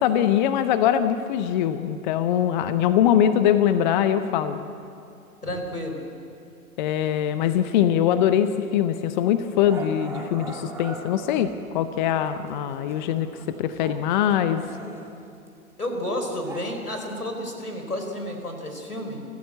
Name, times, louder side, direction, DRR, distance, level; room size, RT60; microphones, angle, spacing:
voice 1, 0.0-4.6 6.8-13.3 13.6-14.6, left 10 dB, 30° left, 11 dB, 0.8 m, -22 dB
voice 2, 5.4-6.0 15.8-19.2, left 1 dB, 85° left, 4 dB, 4.4 m, -31 dB
Growling, 8.7-8.9 9.6-11.7 12.2-14.0 14.3-16.6, right 2 dB, 5° right, 2.3 m, -41 dB
29.0 x 14.5 x 7.8 m, 2.5 s
figure-of-eight pair, 110°, 44 cm